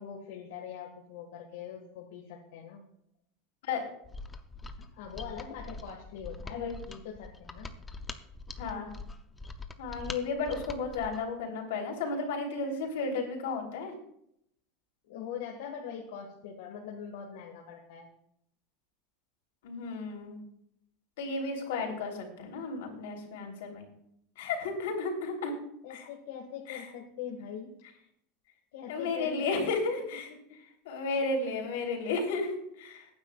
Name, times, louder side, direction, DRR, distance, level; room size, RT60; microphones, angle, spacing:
voice 1, 0.0-2.8 4.8-7.7 15.0-18.1 25.8-27.7 28.7-29.7 30.5-30.6, left 8 dB, 70° left, 0 dB, 1.6 m, -42 dB
Mechanisms, 4.0-11.3, left 3 dB, 10° left, 0.5 m, -43 dB
voice 2, 6.5-6.8 8.6-8.9 9.8-13.9 19.6-20.4 21.2-23.9 24.4-25.5 25.9-26.1 26.7-26.9 28.9-30.3 30.8-33.1, left 3 dB, 85° left, 1 dB, 3.3 m, -33 dB
22.0 x 9.6 x 2.3 m, 0.74 s
supercardioid pair, 175°, 0 cm